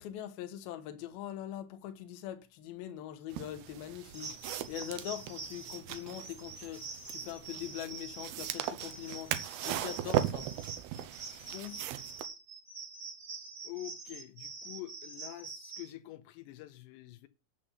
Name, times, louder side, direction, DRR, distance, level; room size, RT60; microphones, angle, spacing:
voice 1, 0.0-10.5, left 11 dB, 70° left, 2.7 m, -42 dB
sound 1, 3.3-12.3, right 12 dB, 75° right, 2.4 m, -38 dB
sound 2, 4.1-15.9, right 4 dB, 35° right, 1.8 m, -45 dB
voice 2, 11.3-11.9 13.6-17.3, left 15 dB, 85° left, 3.0 m, -46 dB
9.8 x 7.6 x 5.6 m
omnidirectional pair, 5.1 m